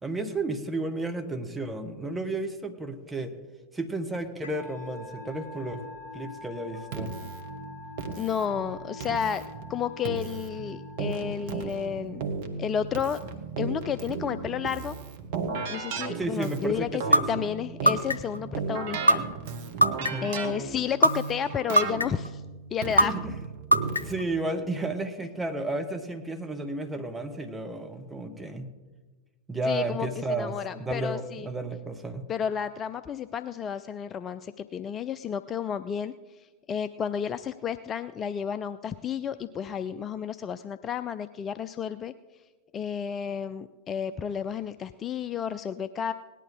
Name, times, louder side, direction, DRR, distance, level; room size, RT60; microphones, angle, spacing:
voice 1, 0.0-3.3 3.7-5.8 6.1-7.1 16.1-17.4 20.0-20.3 23.0-23.4 24.0-28.7 29.5-30.5 30.8-32.3, right 2 dB, 5° right, 4 dB, 1.3 m, -32 dB
Musical instrument, 4.4-12.1, left 3 dB, 55° left, 4.7 m, -45 dB
Keyboard (musical), 6.9-24.3, right 5 dB, 55° right, 1.4 m, -35 dB
voice 2, 8.2-9.4 9.7-12.3 12.6-13.2 13.6-15.0 15.7-17.0 17.3-19.3 20.2-22.4 22.7-23.1 29.7-31.5 32.3-36.1 36.4-42.1 42.7-46.1, left 8 dB, 25° left, 12 dB, 0.4 m, -31 dB
sound 1, 17.1-17.2 17.9-18.4 19.1-19.2 19.8-20.3 21.0-21.1 21.8-22.3 23.0-23.1 23.7-24.2, equal, 80° left, 0.6 m, -18 dB
18.5 x 11.0 x 3.8 m, 1.3 s
figure-of-eight pair, 90°, 0 cm